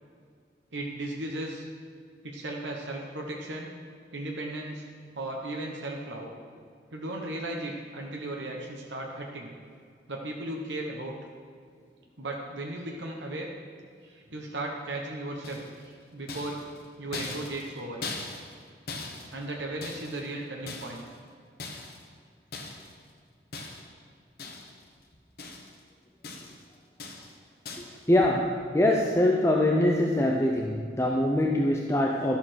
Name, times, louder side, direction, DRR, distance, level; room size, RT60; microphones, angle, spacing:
voice 1, 0.7-1.6 2.2-3.7 4.1-4.8 5.1-6.3 6.9-9.5 10.1-11.1 12.2-13.5 14.0-16.6 17.0-18.0 19.3-21.0, right 1 dB, 85° right, 0 dB, 1.3 m, -36 dB
sound 1, 15.4-15.9 16.3-18.6 18.9-20.3 20.7-21.2 21.6-22.1 22.5-22.9 23.5-24.0 24.4-24.9 25.1-25.8 26.2-26.6 27.0-27.4 27.6-28.0, left 3 dB, 55° left, 1.3 m, -40 dB
voice 2, 28.1-32.4, left 1 dB, 15° left, 0 dB, 0.6 m, -23 dB
11.5 x 7.3 x 6.3 m, 2.2 s
head